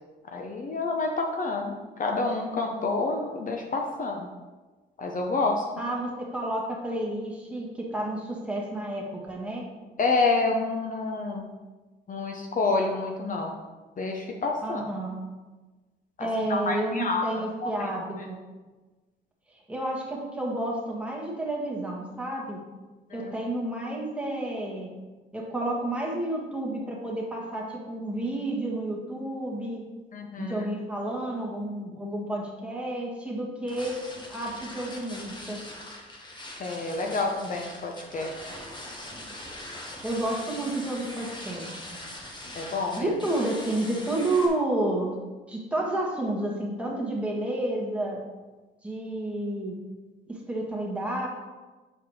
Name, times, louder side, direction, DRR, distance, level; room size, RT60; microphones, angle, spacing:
voice 1, 0.3-4.3 5.0-5.6 10.0-11.5 12.1-13.6 14.0-14.8 16.2-17.3 17.6-17.9 23.1-23.3 30.1-30.7 36.6-38.3 42.5-43.1, left 3 dB, 40° left, 1 dB, 0.7 m, -28 dB
voice 2, 5.8-9.7 14.6-15.2 16.2-18.4 19.7-22.6 23.1-24.9 25.3-29.8 30.4-34.0 34.3-35.6 40.0-41.9 43.0-45.1 45.5-48.2 48.8-49.8 50.3-51.3, right 1 dB, 5° right, -3 dB, 1.7 m, -30 dB
sound 1, 33.7-44.5, left 1 dB, 25° left, 1.3 m, -42 dB
7.5 x 4.7 x 3.2 m, 1.2 s
cardioid pair, 90°, 20 cm